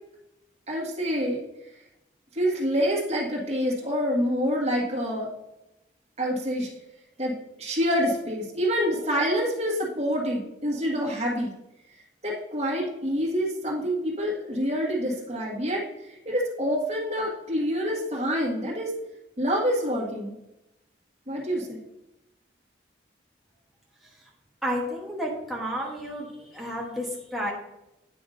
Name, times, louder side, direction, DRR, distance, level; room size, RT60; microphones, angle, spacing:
voice 1, 0.7-1.4 2.3-5.3 6.2-6.7 7.2-11.5 12.2-18.9 19.4-20.4 21.3-21.8, equal, 35° right, -3 dB, 1.7 m, -27 dB
voice 2, 24.6-27.5, equal, ahead, -4 dB, 1.1 m, -32 dB
8.8 x 5.9 x 2.6 m, 0.91 s
head